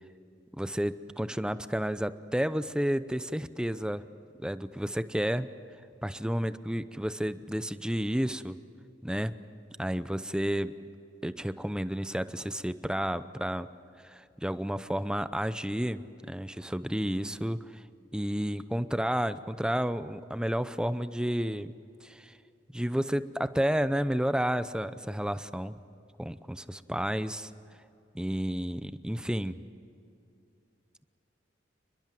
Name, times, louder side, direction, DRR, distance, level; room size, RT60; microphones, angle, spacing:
voice 1, 0.6-4.0 4.4-5.5 6.0-8.6 9.0-9.3 9.8-10.7 11.2-13.7 14.0-17.8 18.1-21.7 22.0-22.3 22.7-25.8 26.2-27.5 28.1-29.6, equal, 5° right, 13 dB, 0.7 m, -31 dB
29.5 x 21.5 x 7.7 m, 2.6 s
head